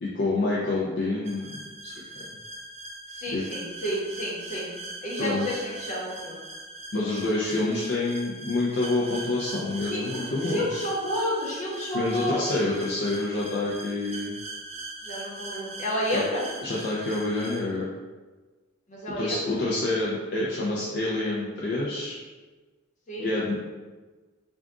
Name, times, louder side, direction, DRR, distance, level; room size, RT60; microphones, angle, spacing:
voice 1, 0.0-1.5 1.8-1.9 3.3-3.4 5.2-5.6 6.9-10.7 11.9-14.3 16.1-16.2 16.6-17.9 19.2-22.2 23.2-23.6, left 2 dB, 55° left, -6 dB, 0.5 m, -27 dB
sound 1, 1.2-17.6, right 2 dB, 35° right, 0.5 m, -40 dB
voice 2, 3.1-4.7 5.0-6.4 9.9-12.4 15.0-16.4 18.9-19.6 23.1-23.3, equal, 40° left, -5 dB, 1.1 m, -31 dB
3.5 x 2.4 x 3.6 m, 1.3 s
head